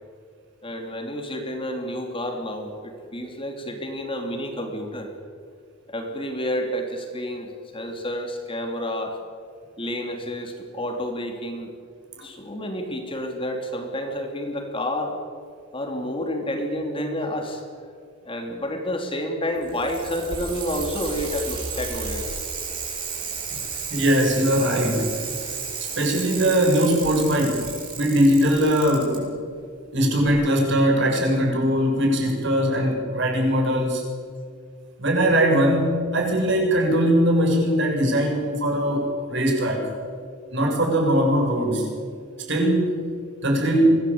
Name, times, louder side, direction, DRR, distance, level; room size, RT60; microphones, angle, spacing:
voice 1, 0.6-5.1 5.9-9.2 9.8-11.7 12.2-15.2 15.7-17.6 18.2-22.3 22.8-23.0, equal, 25° left, 3 dB, 3.0 m, -30 dB
Bicycle, 19.6-29.2 30.3-30.4, right 5 dB, 25° right, 8.0 m, -33 dB
voice 2, 23.9-25.2 26.0-27.7 28.0-29.3 29.9-34.0 35.0-39.9 40.5-41.9 42.5-42.9 43.4-44.0, equal, 60° right, 0 dB, 6.9 m, -20 dB
25.0 x 18.0 x 8.7 m, 2.2 s
head